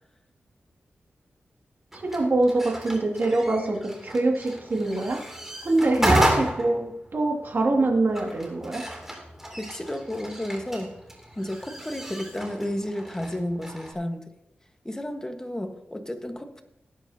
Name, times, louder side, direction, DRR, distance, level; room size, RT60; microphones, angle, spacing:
sound 1, 1.9-13.9, equal, 10° right, 2.7 m, -32 dB
voice 1, 2.1-3.8 4.0-5.3 5.6-8.8, right 2 dB, 55° right, 1 dB, 2.2 m, -24 dB
voice 2, 9.6-11.0 11.4-14.2 14.8-16.6, left 1 dB, 15° left, 6 dB, 1.4 m, -32 dB
17.5 x 9.1 x 2.8 m, 0.82 s
cardioid pair, 70°, 4 cm